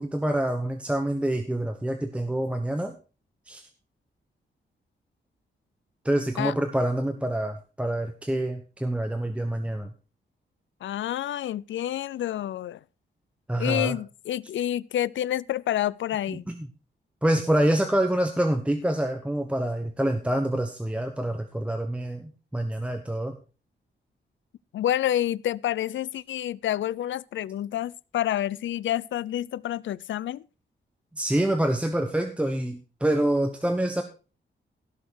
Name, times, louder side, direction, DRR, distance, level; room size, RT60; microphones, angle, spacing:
voice 1, 0.0-3.0 3.5-3.6 6.0-9.9 13.5-14.0 16.3-16.6 17.2-23.4 31.1-34.0, right 1 dB, 5° right, 1.1 m, -26 dB
voice 2, 10.8-12.8 13.6-16.5 24.7-30.4, left 12 dB, 85° left, 0.5 m, -28 dB
17.0 x 6.5 x 4.7 m
wide cardioid pair, 135°, 19 cm